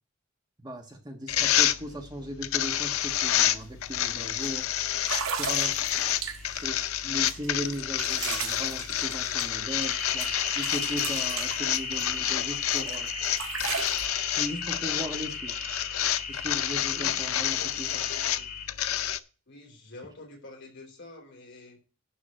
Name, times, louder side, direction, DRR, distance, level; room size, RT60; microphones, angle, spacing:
voice 1, 0.6-4.7 5.4-5.7 6.5-13.1 14.4-15.5 16.3-17.9, equal, 20° right, 3 dB, 1.3 m, -37 dB
sound 1, 1.3-19.2, left 11 dB, 85° left, 0.6 m, -29 dB
sound 2, 3.0-3.1 3.5-3.8 4.4-4.5 5.0-6.7 7.2-9.9 10.2-12.3 12.7-14.1, right 6 dB, 80° right, 1.6 m, -36 dB
sound 3, 6.2-18.6, left 5 dB, 40° left, 2.7 m, -37 dB
voice 2, 16.9-18.5 19.5-21.8, left 2 dB, 60° left, 0 dB, 3.8 m, -47 dB
11.5 x 3.8 x 7.6 m, 0.36 s
head